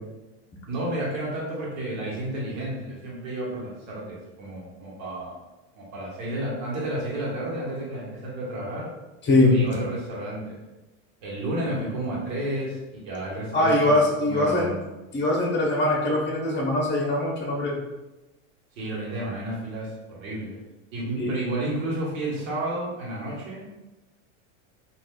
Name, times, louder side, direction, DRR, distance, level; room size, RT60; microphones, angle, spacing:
voice 1, 0.7-5.4 5.7-8.9 9.5-10.6 11.2-14.8 18.8-20.6 20.9-23.8, right 1 dB, 80° right, -5 dB, 1.2 m, -31 dB
voice 2, 13.5-14.7 15.1-17.8 21.2-21.3, left 2 dB, 30° left, -1 dB, 1.0 m, -22 dB
3.4 x 2.5 x 2.3 m, 1.0 s
supercardioid pair, 105°, 39 cm